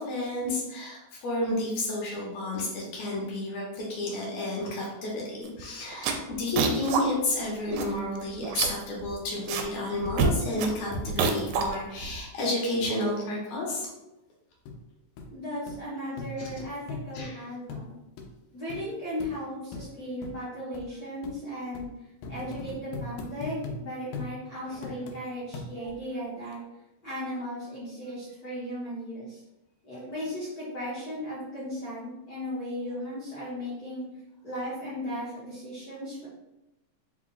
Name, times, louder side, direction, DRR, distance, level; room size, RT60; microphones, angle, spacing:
voice 1, 0.0-13.9 16.4-16.5 17.1-17.5 24.7-24.8, left 1 dB, 70° left, -3 dB, 2.2 m, -31 dB
sound 1, 5.5-5.6 5.9-7.0 7.4-7.5 7.7-8.2 8.4-9.7 10.0-12.2, right 5 dB, 85° right, 2.0 m, -28 dB
sound 2, 14.7-14.8 15.2-15.3 15.7-15.8 16.2-17.3 17.7-17.9 18.2-18.3 18.7-18.8 19.2-19.3 19.7-19.9 20.2-20.4 20.7-20.9 21.2-21.4 21.8-21.9 22.2-23.8 24.1-24.3 24.8-25.2 25.5-26.0 26.5-26.6, left 3 dB, 90° left, 2.1 m, -38 dB
voice 2, 15.3-18.0 18.5-21.9 22.3-26.6 27.0-29.4 29.8-34.0 34.4-36.3, equal, 50° left, -10 dB, 1.1 m, -36 dB
4.9 x 2.3 x 3.8 m, 0.94 s
omnidirectional pair, 3.4 m